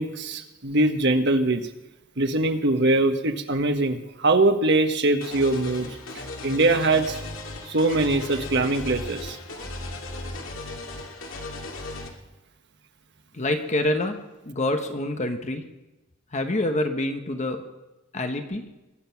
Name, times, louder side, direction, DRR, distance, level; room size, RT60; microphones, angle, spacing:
voice 1, 0.0-1.6 2.2-5.9 6.4-7.2 7.7-9.4, right 2 dB, 60° right, 7 dB, 1.4 m, -22 dB
sound 1, 5.2-12.1, left 2 dB, 75° left, 2.6 m, -36 dB
voice 2, 13.3-14.2 14.5-15.6 16.3-17.6 18.1-18.6, left 1 dB, 35° left, 6 dB, 1.2 m, -26 dB
22.5 x 9.1 x 5.9 m, 1.0 s
head